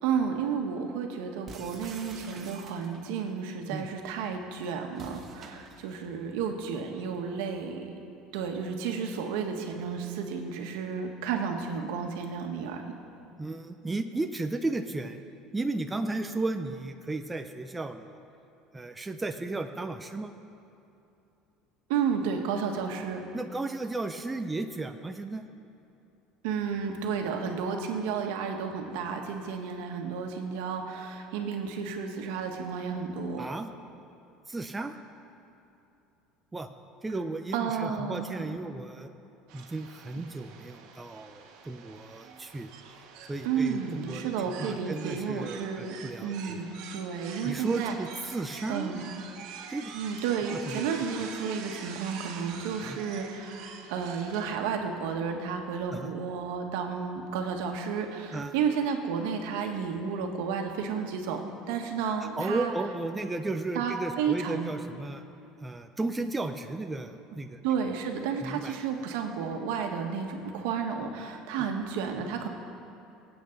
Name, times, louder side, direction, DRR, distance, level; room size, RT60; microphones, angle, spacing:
voice 1, 0.0-7.9 8.3-12.8 21.9-23.2 26.4-33.4 37.5-38.5 43.4-45.9 46.2-47.9 48.7-49.0 49.9-61.4 61.7-62.7 63.7-64.7 67.6-72.5, right 6 dB, 85° right, 3 dB, 1.5 m, -32 dB
sound 1, 1.5-3.2 4.9-6.1, right 4 dB, 25° right, 1.0 m, -47 dB
voice 2, 13.4-15.2 15.5-18.2 18.7-20.3 23.3-25.4 33.4-33.7 34.5-34.9 36.5-36.7 37.0-39.1 39.5-42.7 43.3-46.6 47.4-48.9 49.7-49.9 50.5-50.9 52.8-53.0 55.9-56.1 58.3-58.5 62.3-65.2 65.6-67.6 68.4-68.8 71.6-71.7, right 2 dB, 10° right, 6 dB, 0.4 m, -34 dB
sound 2, 39.5-54.5, right 6 dB, 60° right, 1.3 m, -46 dB
23.5 x 8.6 x 4.0 m, 2.7 s
cardioid pair, 180°, 0 cm